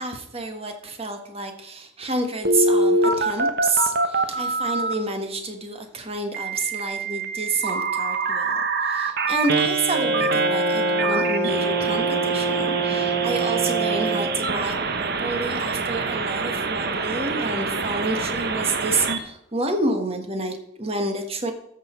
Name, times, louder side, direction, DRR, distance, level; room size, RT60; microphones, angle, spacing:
voice 1, 0.0-21.5, right 2 dB, 30° right, 5 dB, 1.4 m, -29 dB
Telephone, 2.4-4.9 6.3-19.2, right 3 dB, 55° right, 1.0 m, -25 dB
Wind instrument woodwind instrument, 9.9-14.5, right 2 dB, 80° right, 3.1 m, -28 dB
Brass instrument, 10.0-14.4, right 3 dB, 15° left, 1.3 m, -27 dB
13.5 x 6.4 x 4.5 m, 0.80 s
head